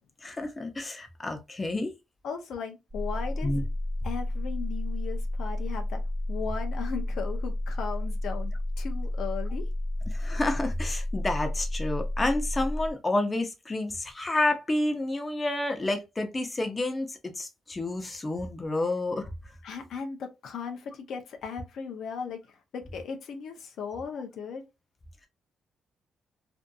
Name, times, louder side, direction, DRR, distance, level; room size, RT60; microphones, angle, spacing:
voice 1, 0.2-1.9 3.4-3.7 10.1-19.3, left 2 dB, 25° left, 0.6 m, -29 dB
voice 2, 2.2-3.6 4.0-6.0 6.3-9.7 19.6-22.4 22.7-24.6, left 6 dB, 70° left, 0.5 m, -37 dB
sound 1, 2.9-12.9, left 1 dB, 20° right, 0.5 m, -31 dB
2.6 x 2.5 x 2.3 m
cardioid pair, 90°, 0 cm